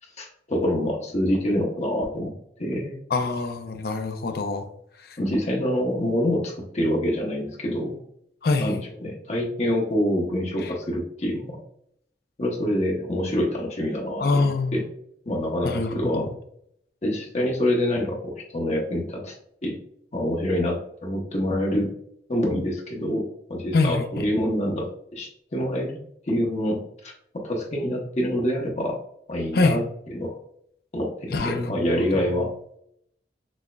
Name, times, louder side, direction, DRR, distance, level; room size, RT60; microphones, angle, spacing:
voice 1, 0.2-2.3 2.6-2.9 5.2-8.0 8.6-11.6 12.4-14.8 15.3-16.2 17.0-19.3 19.6-19.8 20.1-21.9 22.3-26.0 26.3-29.0 29.3-29.8 30.1-30.4 30.9-32.5, equal, 40° left, -1 dB, 0.9 m, -26 dB
voice 2, 3.1-4.7 5.0-5.2 8.4-8.8 10.6-10.7 14.2-14.8 15.6-16.3 23.7-24.3 29.5-29.8 31.3-32.5, left 3 dB, 55° left, 6 dB, 0.5 m, -25 dB
6.2 x 2.1 x 2.2 m, 0.70 s
head